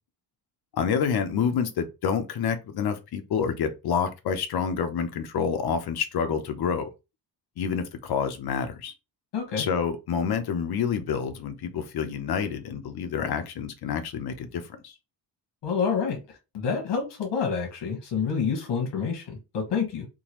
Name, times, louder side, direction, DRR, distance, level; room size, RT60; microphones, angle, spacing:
voice 1, 0.7-6.9 7.6-8.9 9.6-14.9, left 7 dB, 65° left, 0.8 m, -28 dB
voice 2, 9.3-9.6 15.6-20.1, left 6 dB, 85° left, 1.3 m, -28 dB
3.8 x 2.5 x 3.0 m
wide cardioid pair, 135°, 41 cm